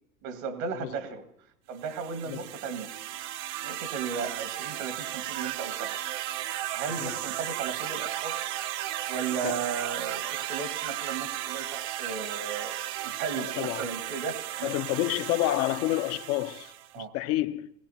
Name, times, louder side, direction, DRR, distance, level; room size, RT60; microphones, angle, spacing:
voice 1, 0.2-1.3 1.7-3.0 3.6-6.0 6.7-8.6 9.1-12.8 13.0-14.7 16.9-17.1, right 5 dB, 70° right, 1.9 m, -35 dB
sound 1, 1.8-16.9, right 13 dB, 50° right, 0.6 m, -35 dB
voice 2, 13.4-13.9 14.6-17.7, left 15 dB, 40° left, 0.5 m, -29 dB
19.0 x 17.0 x 2.8 m
hypercardioid pair, 100°, 40 cm